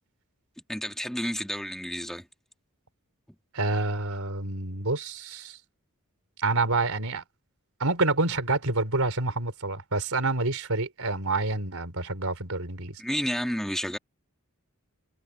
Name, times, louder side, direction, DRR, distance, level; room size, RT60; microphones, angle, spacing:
voice 1, 0.7-2.3 13.0-14.0, equal, ahead, 2.3 m, -30 dB
voice 2, 3.5-5.6 6.4-7.2 7.8-13.0, right 3 dB, 70° right, 4.6 m, -28 dB
head